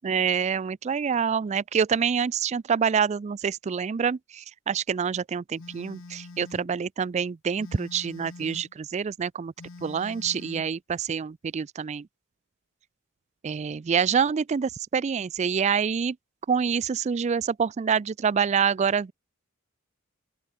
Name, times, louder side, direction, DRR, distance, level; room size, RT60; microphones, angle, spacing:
voice 1, 0.0-9.5 9.8-12.1 13.4-16.2 16.5-19.1, right 6 dB, 30° right, 0.3 m, -26 dB
Telephone, 5.6-6.7 7.6-8.7 9.6-10.7, left 3 dB, 60° left, 0.9 m, -45 dB
open air
head